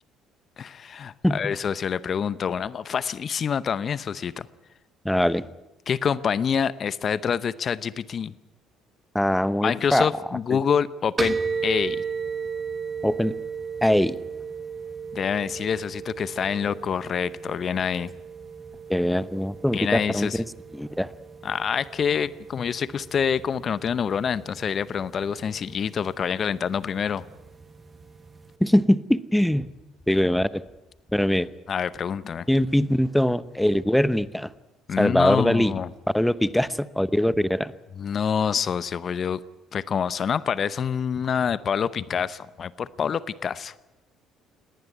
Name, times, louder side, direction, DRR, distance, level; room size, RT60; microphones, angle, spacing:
voice 1, 0.6-4.5 5.9-8.3 9.6-11.4 11.6-12.0 15.1-18.1 19.7-20.4 21.4-27.2 31.7-32.5 34.9-35.9 38.0-39.4 39.7-43.7, left 7 dB, 50° left, 18 dB, 0.7 m, -26 dB
voice 2, 1.2-1.5 5.0-5.4 9.1-10.1 10.5-10.6 13.0-13.3 13.8-14.2 18.9-20.4 20.7-21.1 28.6-29.7 30.1-30.6 31.1-31.5 32.5-34.5 35.0-35.7 36.1-37.7, left 1 dB, 5° left, 17 dB, 0.9 m, -22 dB
sound 1, 11.2-28.5, right 5 dB, 25° right, 1.5 m, -36 dB
19.5 x 18.5 x 9.3 m, 1.0 s
hypercardioid pair, 60°, 0 cm